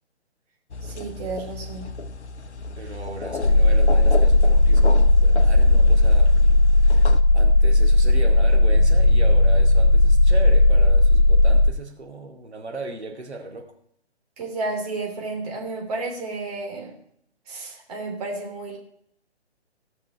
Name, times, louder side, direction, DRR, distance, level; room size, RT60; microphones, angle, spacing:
sound 1, 0.7-7.2, left 3 dB, 80° left, 0.8 m, -34 dB
voice 1, 0.8-1.9 14.4-16.9 17.5-18.8, right 3 dB, 35° right, 0 dB, 3.1 m, -32 dB
voice 2, 2.8-6.3 6.7-7.1 7.3-13.7, right 2 dB, 75° right, 3 dB, 2.4 m, -37 dB
sound 2, 3.4-11.7, left 2 dB, 65° left, 1.8 m, -16 dB
sound 3, 8.8-11.3, right 1 dB, 30° left, 0.4 m, -35 dB
17.0 x 6.1 x 5.9 m, 0.68 s
figure-of-eight pair, 140°, 34 cm